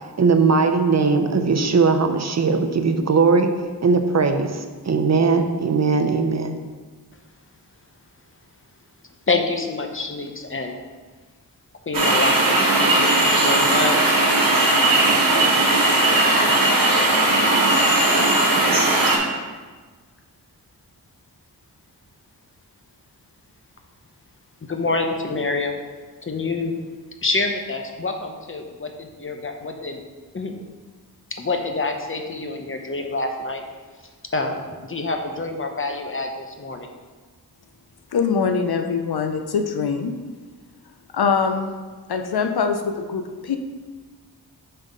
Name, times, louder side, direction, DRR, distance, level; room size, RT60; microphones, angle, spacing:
voice 1, 0.2-3.5 3.8-6.6, right 4 dB, 40° right, 6 dB, 0.7 m, -19 dB
voice 2, 9.3-10.8 11.9-14.2 24.6-25.8 26.2-26.8 27.2-30.0 30.3-30.6 31.3-33.6 34.3-36.9, left 3 dB, 30° left, 4 dB, 0.8 m, -27 dB
sound 1, 11.9-19.2, right 2 dB, 60° right, 1.2 m, -18 dB
voice 3, 38.1-40.1 41.1-41.7 42.1-43.6, left 5 dB, 70° left, 6 dB, 0.7 m, -23 dB
5.5 x 3.6 x 5.3 m, 1.4 s
cardioid pair, 50°, 40 cm